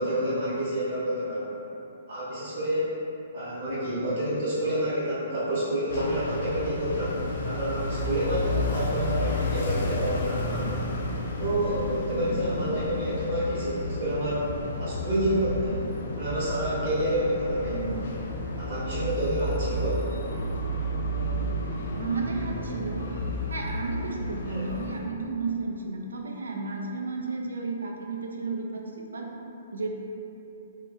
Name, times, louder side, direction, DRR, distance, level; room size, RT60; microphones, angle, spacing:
voice 1, 0.0-1.6 2.1-3.0 3.3-7.1 7.4-10.9 11.4-14.4 14.8-15.8 16.1-18.0 18.6-20.0 24.4-24.6, equal, 55° right, -11 dB, 0.9 m, -29 dB
sound 1, 5.9-25.0, left 1 dB, 60° left, 0.3 m, -31 dB
voice 2, 22.0-23.1 23.5-29.3 29.7-29.9, right 3 dB, 80° right, 0 dB, 0.3 m, -32 dB
2.2 x 2.1 x 2.9 m, 2.8 s
hypercardioid pair, 130°, 0 cm